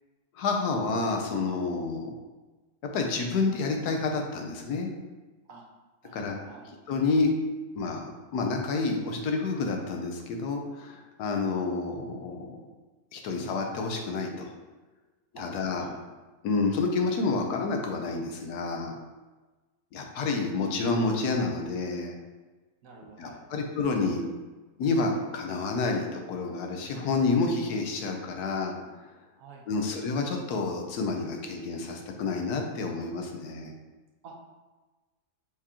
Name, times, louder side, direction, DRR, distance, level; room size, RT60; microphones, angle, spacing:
voice 1, 0.4-2.1 2.9-4.9 6.1-6.4 6.9-7.3 7.7-12.6 13.1-14.5 15.3-15.8 16.4-18.9 19.9-22.2 23.2-24.2 24.8-28.8 29.7-33.7, left 3 dB, 85° left, 2 dB, 1.2 m, -29 dB
voice 2, 6.0-6.7 15.3-15.5 15.8-16.0 22.8-23.6 29.4-29.9 34.2-34.4, right 4 dB, 65° right, -1 dB, 1.0 m, -49 dB
4.9 x 2.8 x 3.6 m, 1.2 s
omnidirectional pair, 1.6 m